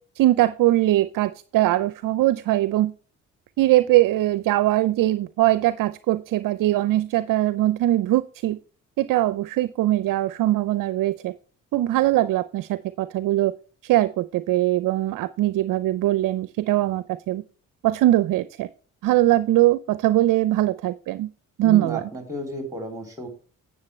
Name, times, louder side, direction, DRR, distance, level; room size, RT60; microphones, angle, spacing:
voice 1, 0.2-2.9 3.6-8.6 9.0-11.3 11.7-13.5 13.8-17.4 17.8-18.7 19.0-21.3 21.6-22.1, right 15 dB, 60° right, 15 dB, 0.6 m, -21 dB
voice 2, 21.6-23.3, right 1 dB, 10° right, 4 dB, 3.1 m, -33 dB
9.6 x 7.7 x 3.1 m, 0.40 s
hypercardioid pair, 55°, 37 cm